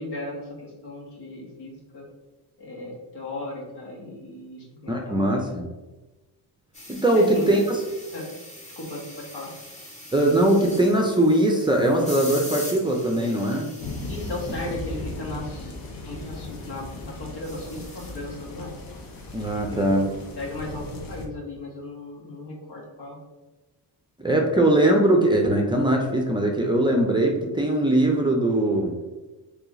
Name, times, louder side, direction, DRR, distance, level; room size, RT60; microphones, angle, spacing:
voice 1, 0.0-2.1 2.6-5.6 7.1-7.7 8.1-8.3 8.8-9.5 14.1-15.7 16.0-18.7 19.6-20.1 20.3-23.2, left 2 dB, 70° left, -3 dB, 1.4 m, -36 dB
voice 2, 4.9-5.7 6.9-7.8 10.1-13.7 19.3-20.1 24.2-28.9, right 1 dB, 10° right, 0 dB, 0.5 m, -21 dB
sound 1, 6.7-19.8, left 1 dB, 15° left, 0.9 m, -43 dB
sound 2, 13.8-21.3, left 2 dB, 55° left, 0.8 m, -37 dB
3.3 x 2.9 x 3.7 m, 1.1 s
cardioid pair, 105°, 41 cm